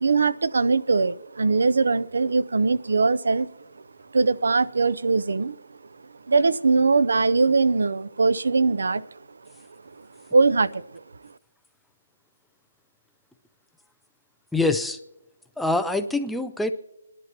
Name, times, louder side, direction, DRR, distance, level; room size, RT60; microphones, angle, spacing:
voice 1, 0.0-3.5 4.1-5.6 6.3-9.1 10.3-11.0, right 4 dB, 75° right, 17 dB, 0.6 m, -21 dB
voice 2, 14.5-15.0 15.6-16.7, left 2 dB, ahead, 7 dB, 0.4 m, -24 dB
26.0 x 11.0 x 3.0 m, 0.90 s
hypercardioid pair, 175°, 0 cm